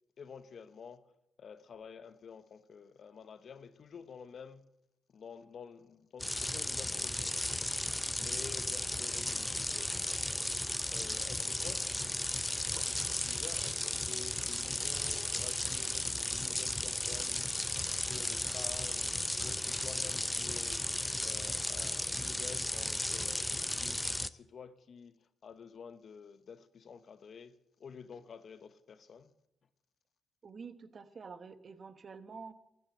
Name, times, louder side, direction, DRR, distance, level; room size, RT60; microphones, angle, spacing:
voice 1, 0.2-1.1 1.4-4.7 5.1-7.7 8.2-10.5 10.9-12.2 12.8-17.5 18.1-20.9 21.2-27.5 27.8-29.3, left 6 dB, 60° left, 1.0 m, -50 dB
sound 1, 6.2-24.3, left 1 dB, 15° left, 0.6 m, -35 dB
voice 2, 30.4-32.5, right 5 dB, 50° right, 1.2 m, -48 dB
13.5 x 9.5 x 9.0 m
supercardioid pair, 50°, 0 cm